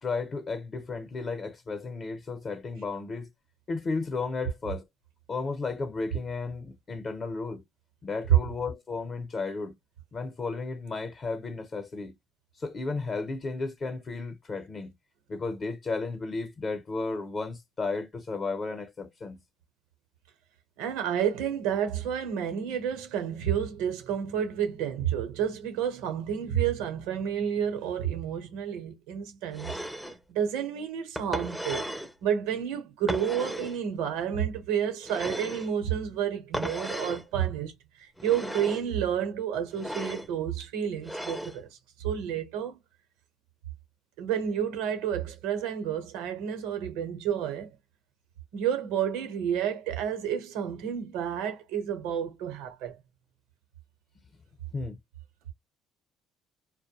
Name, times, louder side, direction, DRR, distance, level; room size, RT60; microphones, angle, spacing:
voice 1, 0.0-3.3 3.7-4.8 5.3-7.6 8.0-9.7 10.1-12.1 12.6-14.9 15.3-19.4 54.7-55.0, left 3 dB, 40° left, 0.7 m, -33 dB
voice 2, 20.8-29.8 30.3-31.9 32.2-41.7 42.0-42.8 44.2-47.7 48.5-53.0, right 9 dB, 90° right, 0.9 m, -30 dB
sound 1, 29.5-30.2 31.2-32.1 33.1-33.8 35.0-35.7 36.5-37.2 38.2-38.9 39.7-40.3 41.0-41.6, equal, ahead, 0.5 m, -35 dB
2.2 x 2.1 x 2.9 m
supercardioid pair, 85°, 0 cm